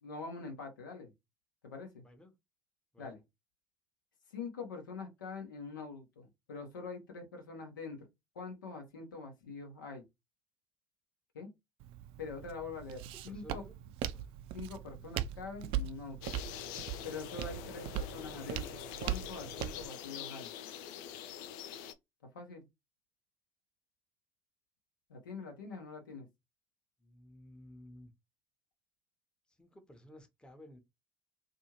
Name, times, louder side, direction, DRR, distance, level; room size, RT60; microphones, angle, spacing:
voice 1, 0.0-1.1 1.6-2.0 3.0-3.2 4.3-8.1 8.3-10.0 11.3-11.5 12.2-13.6 14.5-16.4 17.0-20.5 22.3-22.6 25.1-26.3, left 4 dB, 85° left, 0.9 m, -44 dB
Walk footsteps, 11.8-19.9, right 10 dB, 60° right, 0.4 m, -40 dB
voice 2, 13.3-13.7 14.0-14.3 27.0-28.1 29.6-30.8, left 1 dB, 10° left, 0.8 m, -54 dB
sound 1, 16.2-21.9, left 9 dB, 70° left, 0.4 m, -45 dB
2.6 x 2.4 x 2.8 m
hypercardioid pair, 60°, 11 cm